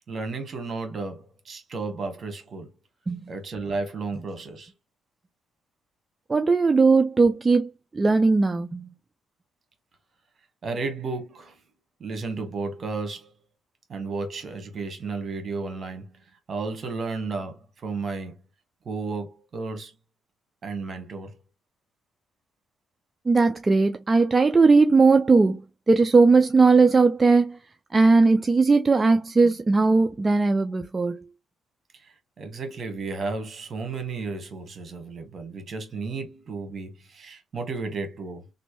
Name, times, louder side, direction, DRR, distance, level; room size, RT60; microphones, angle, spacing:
voice 1, 0.1-2.7 3.3-4.7 10.6-11.6 12.0-13.3 13.9-18.4 18.8-19.9 20.6-21.4 31.9-38.5, right 3 dB, 50° right, 1.3 m, -33 dB
voice 2, 6.3-8.9 23.3-25.6 25.9-27.6 27.9-31.2, right 4 dB, 25° right, 0.4 m, -19 dB
3.2 x 2.6 x 3.0 m
cardioid pair, 90°, 0 cm